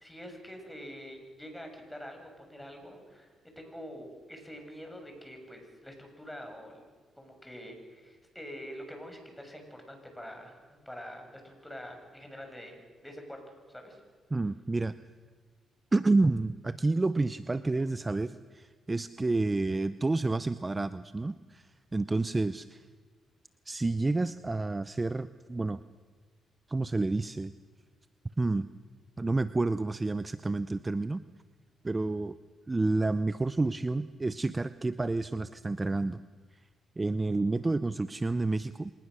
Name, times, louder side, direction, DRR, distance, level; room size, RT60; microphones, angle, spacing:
voice 1, 0.0-6.8 7.1-14.0, equal, 5° left, 4 dB, 6.6 m, -46 dB
voice 2, 14.3-14.9 15.9-22.8 23.7-25.8 26.7-27.5 28.4-28.7 29.2-31.2 31.8-32.3 32.7-36.2 37.0-38.9, right 2 dB, 25° right, 14 dB, 0.7 m, -29 dB
25.5 x 19.5 x 6.5 m, 1.4 s
supercardioid pair, 60°, 0 cm